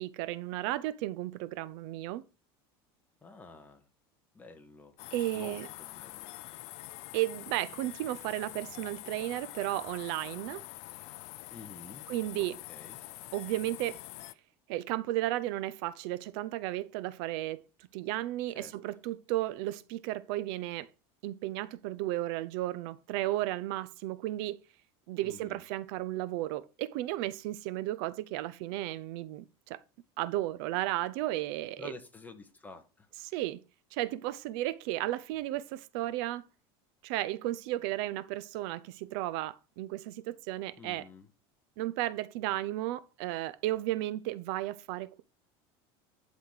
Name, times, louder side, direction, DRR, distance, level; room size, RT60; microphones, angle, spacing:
voice 1, 0.0-2.2 5.1-5.7 7.1-10.6 12.1-12.6 13.3-14.0 14.7-17.6 17.9-20.9 21.2-24.6 25.1-29.8 30.2-31.9 33.3-33.6 33.9-36.4 37.0-41.0 41.8-45.2, right 15 dB, 70° right, 0.6 m, -34 dB
voice 2, 3.2-3.8 4.3-5.0 5.3-6.3 11.5-12.1 12.7-13.0 18.5-18.7 25.2-25.6 31.8-33.1 40.8-41.3, left 2 dB, 15° left, 1.6 m, -49 dB
sound 1, 5.0-14.3, left 19 dB, 60° left, 0.6 m, -46 dB
11.5 x 4.2 x 4.9 m
supercardioid pair, 130°, 13 cm